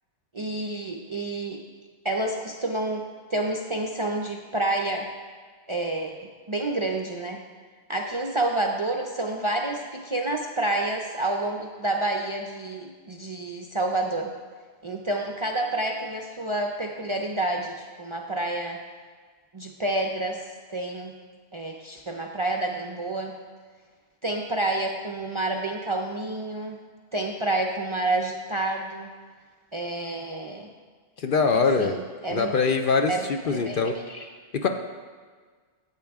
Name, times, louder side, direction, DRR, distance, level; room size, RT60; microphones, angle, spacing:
voice 1, 0.3-1.6 2.0-5.1 5.7-7.4 7.9-14.3 14.8-18.8 19.5-21.2 21.5-23.4 24.2-26.8 27.1-29.1 29.7-30.7 31.5-32.5 33.1-33.8 34.1-34.2, right 2 dB, 40° right, 1 dB, 0.5 m, -29 dB
voice 2, 31.2-31.9 32.3-34.0 34.5-34.7, left 4 dB, 55° left, 5 dB, 0.7 m, -23 dB
13.5 x 8.3 x 3.5 m, 1.5 s
omnidirectional pair, 1.2 m